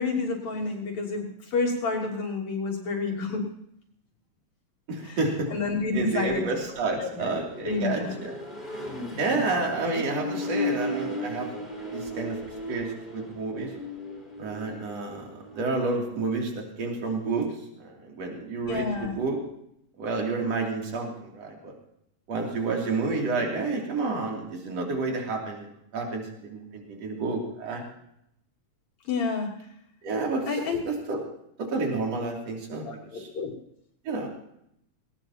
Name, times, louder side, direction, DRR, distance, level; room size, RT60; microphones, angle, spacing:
voice 1, 0.0-3.5 5.1-5.2 5.5-6.4 7.0-7.4 7.6-8.2 18.6-19.1 29.1-29.5 30.5-30.8 32.8-33.5, left 4 dB, 70° left, -1 dB, 4.5 m, -29 dB
voice 2, 4.9-5.5 5.9-8.4 9.2-11.5 11.9-12.4 12.7-13.7 14.4-19.4 20.0-21.7 22.3-27.8 30.0-30.5 30.9-31.2 31.6-33.3 34.0-34.3, right 3 dB, 60° right, 0 dB, 4.1 m, -30 dB
Accelerating revving vroom, 5.4-15.8, left 2 dB, 15° left, 4.7 m, -36 dB
19.5 x 18.5 x 3.0 m, 0.75 s
omnidirectional pair, 3.3 m